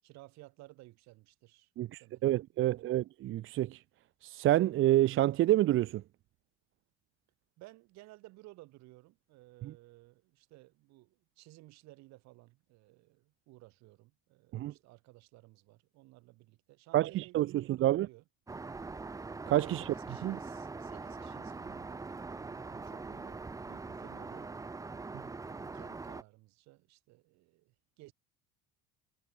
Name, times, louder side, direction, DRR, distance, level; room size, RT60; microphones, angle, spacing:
voice 1, 0.0-3.1 7.6-18.2 19.8-24.5 24.8-28.1, right 20 dB, 65° right, 6.9 m, -57 dB
voice 2, 1.8-3.8 4.2-6.0 9.6-9.7 14.5-14.7 16.9-18.1 19.5-19.8 20.2-20.4 25.1-25.2, right 14 dB, 45° right, 1.0 m, -28 dB
Aircraft, 18.5-26.2, right 3 dB, 10° right, 1.1 m, -43 dB
cardioid pair, 160°, 29 cm